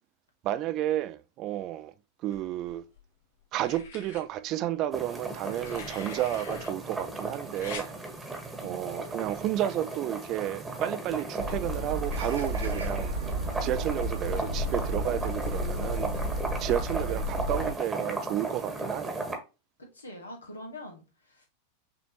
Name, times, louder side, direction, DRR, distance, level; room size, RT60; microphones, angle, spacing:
voice 1, 0.4-1.9 2.2-2.8 3.5-7.9 8.6-13.1 13.6-16.2 16.6-19.2, right 13 dB, 40° right, 0.4 m, -32 dB
sound 1, 2.3-3.0 3.5-4.2 5.4-6.7 7.6-7.9 9.2-9.5, left 6 dB, 60° left, 1.7 m, -44 dB
sound 2, 4.9-19.4, right 2 dB, 10° right, 1.2 m, -36 dB
sound 3, 11.4-17.7, equal, 80° right, 1.1 m, -32 dB
voice 2, 19.8-21.5, left 1 dB, 80° left, 1.5 m, -44 dB
6.1 x 3.0 x 2.8 m
figure-of-eight pair, 90°, 0 cm